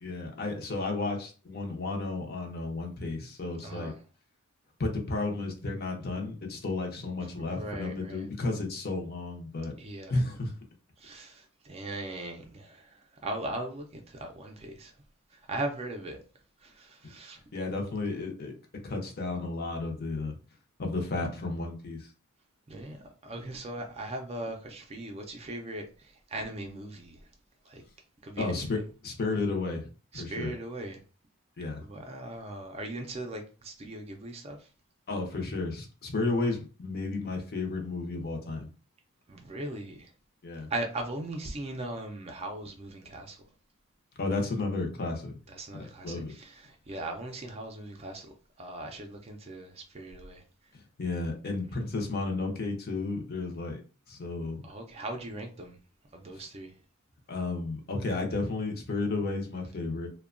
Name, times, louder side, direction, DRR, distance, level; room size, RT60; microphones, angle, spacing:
voice 1, 0.0-3.9 4.8-9.8 10.1-10.5 17.5-18.5 18.8-20.4 20.8-22.1 28.4-29.9 30.1-30.5 31.6-31.9 35.1-38.7 40.4-40.7 44.2-45.3 45.7-46.3 51.0-53.8 54.1-54.7 57.3-60.1, left 3 dB, 45° left, 0.6 m, -32 dB
voice 2, 3.6-4.0 7.4-8.3 9.8-10.2 11.0-14.9 15.3-16.2 16.6-17.4 22.7-27.3 27.6-27.8 28.2-28.6 30.1-31.0 31.8-34.7 39.3-40.1 40.7-43.4 45.5-50.4 54.6-55.8 56.1-56.8, right 2 dB, 30° right, 0.4 m, -39 dB
2.7 x 2.1 x 2.4 m
head